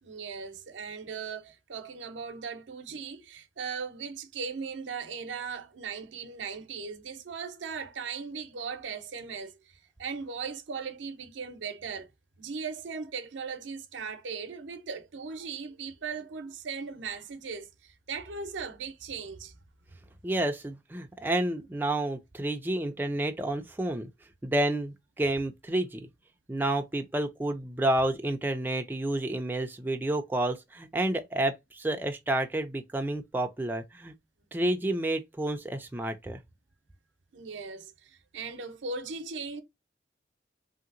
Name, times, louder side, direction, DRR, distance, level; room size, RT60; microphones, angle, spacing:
voice 1, 0.0-12.1 12.4-19.5 37.3-39.6, right 5 dB, 85° right, 0.6 m, -38 dB
voice 2, 20.2-24.1 24.4-26.1 26.5-34.1 34.5-36.4, right 1 dB, 10° right, 0.3 m, -30 dB
3.2 x 2.8 x 2.4 m
head